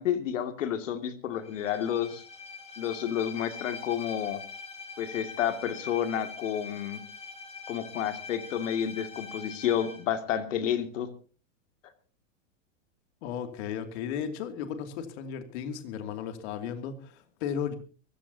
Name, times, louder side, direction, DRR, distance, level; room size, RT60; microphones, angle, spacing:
voice 1, 0.0-2.2 2.8-4.4 5.0-7.0 7.7-11.1, left 9 dB, 80° left, 7 dB, 2.5 m, -30 dB
Bowed string instrument, 1.4-10.1, left 4 dB, 15° left, 3.4 m, -43 dB
voice 2, 13.2-17.7, left 8 dB, 60° left, 6 dB, 2.7 m, -35 dB
24.0 x 15.0 x 2.8 m, 0.39 s
hypercardioid pair, 130°, 38 cm